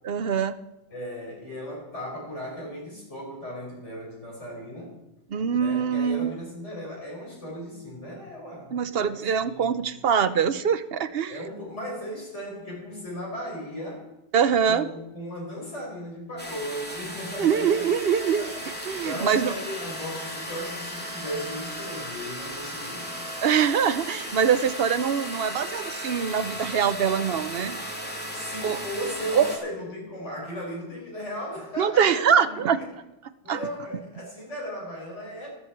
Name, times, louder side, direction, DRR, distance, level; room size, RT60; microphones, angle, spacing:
voice 1, 0.0-0.5 5.3-6.3 8.7-11.4 14.3-14.9 17.4-18.4 18.9-19.5 23.4-27.8 28.6-28.8 29.3-29.5 31.8-32.8 33.5-33.6, right 7 dB, 60° right, 12 dB, 0.9 m, -23 dB
voice 2, 0.9-5.0 5.5-9.9 11.3-14.1 14.7-17.9 18.3-18.6 19.0-23.2 28.3-32.9 33.4-35.5, equal, 80° left, -2 dB, 5.5 m, -36 dB
sound 1, 16.4-29.6, equal, 10° left, 2.3 m, -36 dB
13.5 x 13.0 x 4.6 m, 0.97 s
omnidirectional pair, 1.2 m